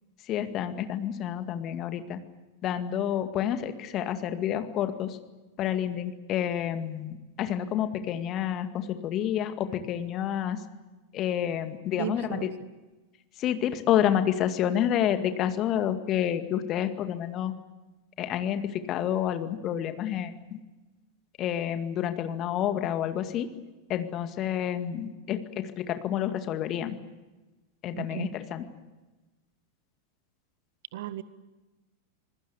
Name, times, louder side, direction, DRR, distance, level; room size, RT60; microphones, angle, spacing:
voice 1, 0.3-2.2 2.6-5.2 5.6-10.6 11.1-12.5 13.4-17.5 18.2-20.6 21.4-23.5 23.9-27.0 27.8-28.6, left 10 dB, 35° left, 9 dB, 2.1 m, -29 dB
voice 2, 12.0-12.7 28.0-28.3 30.9-31.2, right 13 dB, 55° right, 16 dB, 1.2 m, -35 dB
26.5 x 21.0 x 8.3 m, 1.1 s
figure-of-eight pair, 90°, 0 cm